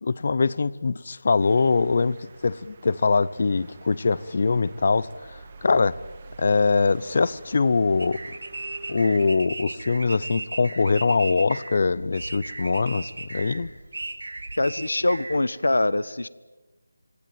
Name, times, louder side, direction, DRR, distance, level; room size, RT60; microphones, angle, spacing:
voice 1, 0.0-6.0 6.4-8.2 8.9-13.7, left 4 dB, 45° left, 0.9 m, -23 dB
sound 1, 1.4-9.3, right 4 dB, 30° right, 2.1 m, -47 dB
sound 2, 8.0-15.4, right 2 dB, 85° right, 4.7 m, -36 dB
voice 2, 14.6-16.3, left 2 dB, 90° left, 1.0 m, -23 dB
27.0 x 19.5 x 9.1 m
figure-of-eight pair, 170°, 0 cm